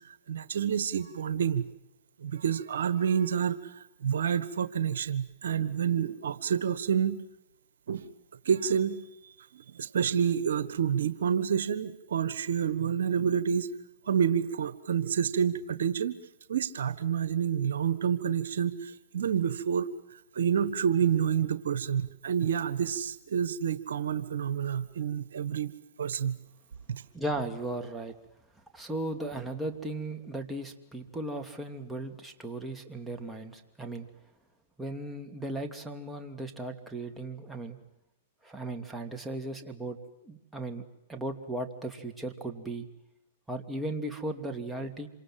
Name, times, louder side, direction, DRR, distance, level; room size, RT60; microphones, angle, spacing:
voice 1, 0.3-1.7 2.2-3.6 4.0-7.2 7.9-8.1 8.4-9.0 9.5-13.7 14.1-16.2 16.5-19.9 20.3-25.7 26.0-26.4 26.9-27.0, right 8 dB, 80° right, 13 dB, 1.5 m, -28 dB
voice 2, 27.1-28.2 28.7-34.1 34.8-37.8 38.4-40.0 40.2-40.8 41.1-42.9 43.5-45.1, right 2 dB, 5° right, 2 dB, 2.8 m, -36 dB
28.0 x 26.0 x 7.7 m, 0.88 s
hypercardioid pair, 125°, 0 cm